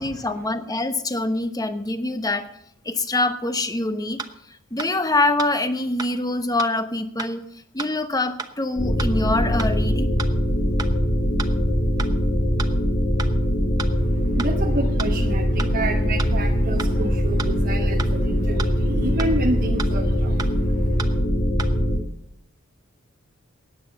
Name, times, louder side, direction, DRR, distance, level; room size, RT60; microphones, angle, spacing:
voice 1, 0.0-2.5 2.8-4.2 4.7-7.5 7.7-10.2, left 2 dB, 15° left, 9 dB, 1.1 m, -24 dB
sound 1, 4.2-4.3 4.8-4.9 5.4-5.5 6.0-6.1 6.6-6.7 7.2-7.3 7.8-7.9 8.4-8.5 9.0-9.1 9.6-9.7 10.2-10.3 10.8-10.9 11.4-11.5 12.0-12.1 12.6-12.7 13.2-13.3 13.8-13.9 14.4-14.5 15.0-15.1 15.6-15.7 16.2-16.3 16.8-16.9 17.4-17.5 18.0-18.1 18.6-18.7 19.2-19.3 19.8-19.9 20.4-20.5 21.0-21.1 21.6-21.7, right 4 dB, 20° right, 0.9 m, -31 dB
sound 2, 8.8-22.0, equal, 50° left, 2.1 m, -22 dB
voice 2, 14.0-21.2, right 2 dB, 45° right, 1 dB, 1.1 m, -30 dB
15.0 x 9.6 x 6.7 m, 0.76 s
head